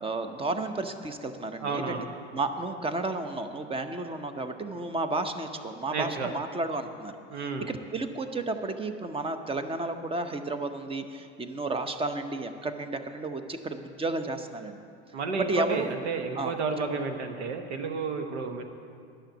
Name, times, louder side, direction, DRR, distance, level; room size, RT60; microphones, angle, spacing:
voice 1, 0.0-2.0 2.3-14.8 15.4-15.9 16.3-16.5, right 2 dB, 15° right, 8 dB, 0.7 m, -32 dB
voice 2, 1.6-2.1 5.9-6.3 7.3-7.7 15.1-18.6, right 4 dB, 75° right, 6 dB, 1.2 m, -31 dB
11.5 x 6.3 x 7.8 m, 2.4 s
hypercardioid pair, 80°, 34 cm